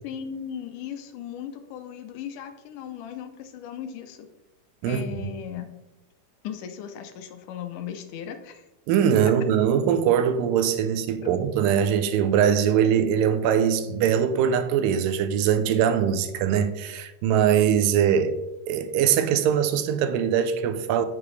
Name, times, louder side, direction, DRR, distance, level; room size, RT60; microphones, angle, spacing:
voice 1, 0.0-4.3 4.9-5.7 6.4-8.6 9.3-9.4 11.2-11.3, left 9 dB, 75° left, 2.1 m, -37 dB
voice 2, 8.9-18.4 18.7-21.1, right 8 dB, 90° right, 2.3 m, -22 dB
8.7 x 6.3 x 3.2 m
omnidirectional pair, 3.8 m